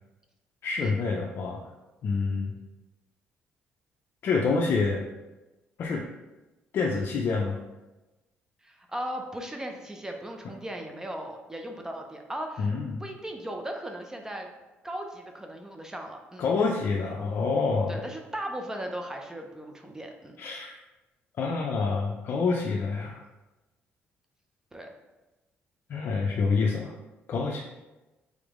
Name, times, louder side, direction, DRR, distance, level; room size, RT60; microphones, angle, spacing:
voice 1, 0.6-1.6 2.0-2.5 4.2-5.0 5.8-6.0 6.7-7.6 12.6-12.9 16.4-18.0 20.4-20.7 21.4-23.2 25.9-26.9 27.3-27.6, left 4 dB, 55° left, -1 dB, 0.5 m, -27 dB
voice 2, 8.6-12.7 13.0-14.5 14.8-16.6 17.9-20.4 24.7-24.9, right 1 dB, 15° right, 3 dB, 0.5 m, -37 dB
3.8 x 3.5 x 3.5 m, 1.1 s
cardioid pair, 110°, 4 cm